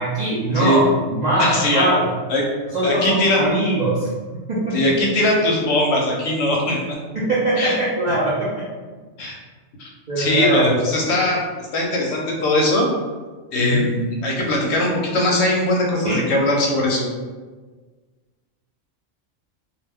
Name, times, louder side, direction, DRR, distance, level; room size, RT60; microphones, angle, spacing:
voice 1, 0.0-2.2 2.7-4.1 4.5-5.0 7.1-8.7 10.1-10.8 13.6-13.8 16.0-16.2, right 1 dB, 55° right, -8 dB, 0.5 m, -21 dB
voice 2, 1.4-1.9 2.3-2.4 2.8-3.4 4.7-7.0 7.6-7.7 9.2-9.4 9.8-9.9 10.2-12.9 13.5-17.1, left 1 dB, 65° left, -2 dB, 0.8 m, -20 dB
2.3 x 2.0 x 3.4 m, 1.4 s
omnidirectional pair, 1.3 m